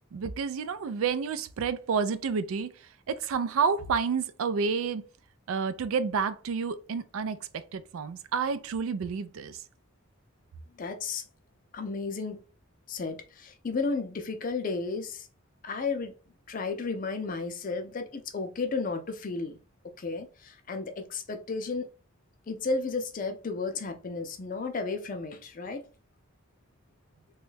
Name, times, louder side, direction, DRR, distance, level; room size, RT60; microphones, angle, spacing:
voice 1, 0.1-2.7 3.1-5.0 5.5-7.4 7.7-9.6, right 5 dB, 75° right, 0.3 m, -29 dB
voice 2, 10.8-11.2 11.7-12.4 12.9-15.3 15.6-16.1 16.5-19.6 20.0-21.9 22.5-25.8, left 4 dB, 40° left, 0.4 m, -33 dB
3.0 x 2.3 x 3.2 m
head